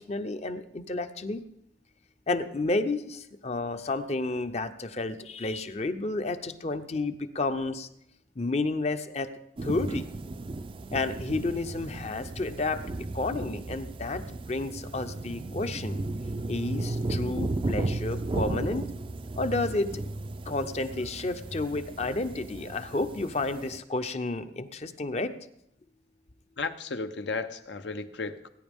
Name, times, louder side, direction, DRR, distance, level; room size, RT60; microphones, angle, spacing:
voice 1, 0.0-1.4 2.3-7.9 8.4-9.3 9.6-10.1 10.9-12.8 13.1-16.0 16.5-18.9 19.4-20.0 20.5-25.3, left 2 dB, 35° left, 10 dB, 0.6 m, -31 dB
sound 1, 9.6-23.8, right 2 dB, 30° right, 0.4 m, -35 dB
voice 2, 26.6-28.5, left 4 dB, 75° left, 9 dB, 0.8 m, -34 dB
19.0 x 9.7 x 3.6 m, 0.79 s
head